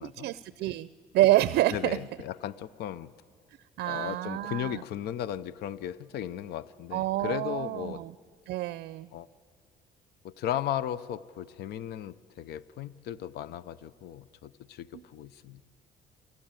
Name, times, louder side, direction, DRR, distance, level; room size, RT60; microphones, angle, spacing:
voice 1, 0.0-2.0 3.8-4.8 6.9-8.1 8.5-9.1 14.9-15.0, right 15 dB, 70° right, 16 dB, 0.5 m, -28 dB
voice 2, 1.7-3.1 3.9-8.0 9.1-9.3 10.2-15.6, left 11 dB, 70° left, 17 dB, 0.6 m, -36 dB
27.5 x 14.0 x 9.0 m, 2.1 s
cardioid pair, 110°, 17 cm